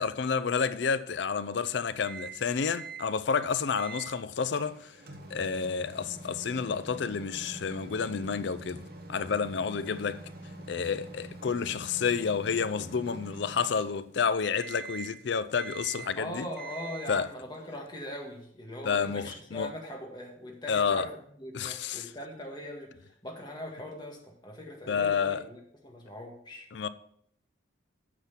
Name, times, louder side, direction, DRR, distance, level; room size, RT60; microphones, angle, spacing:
voice 1, 0.0-5.0 5.3-8.8 9.1-10.2 10.7-16.5 17.1-17.3 18.8-19.7 20.7-21.1 21.5-22.1 24.9-25.4 26.7-26.9, left 6 dB, 60° left, 0.4 m, -30 dB
Microwave oven, 2.0-2.4 2.7-3.1 3.8-4.1 4.6-14.2 14.6-15.2 15.6-16.2 16.6-17.2, right 3 dB, 50° right, 1.2 m, -45 dB
voice 2, 16.2-21.1 21.4-26.7, left 1 dB, 20° left, 1.7 m, -41 dB
9.0 x 6.0 x 5.8 m
head